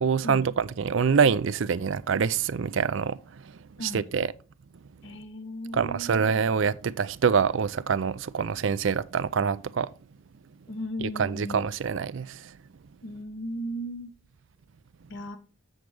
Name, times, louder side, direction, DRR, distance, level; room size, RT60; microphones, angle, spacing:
voice 1, 0.0-4.3 5.7-9.9 11.0-12.6, right 6 dB, 60° right, 0.4 m, -26 dB
voice 2, 5.0-6.1 10.7-11.6 13.0-14.1 15.1-15.4, equal, 60° left, 1.2 m, -36 dB
7.8 x 7.3 x 3.4 m
head